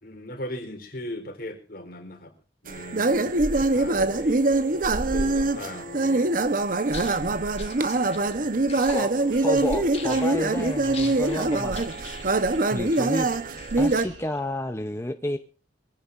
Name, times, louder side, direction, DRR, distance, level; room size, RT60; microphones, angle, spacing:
voice 1, 0.0-2.3 2.6-4.4 5.1-6.3, left 1 dB, 55° left, 4 dB, 4.0 m, -38 dB
sound 1, 2.7-14.0, right 2 dB, 50° right, 1.0 m, -24 dB
sound 2, 6.8-14.4, left 6 dB, 35° left, 2.6 m, -44 dB
sound 3, 9.3-14.7, right 2 dB, 85° right, 2.9 m, -47 dB
voice 2, 9.4-11.8 12.7-13.3 13.8-15.4, left 1 dB, 15° left, 7 dB, 0.8 m, -30 dB
23.0 x 15.5 x 2.6 m, 0.35 s
head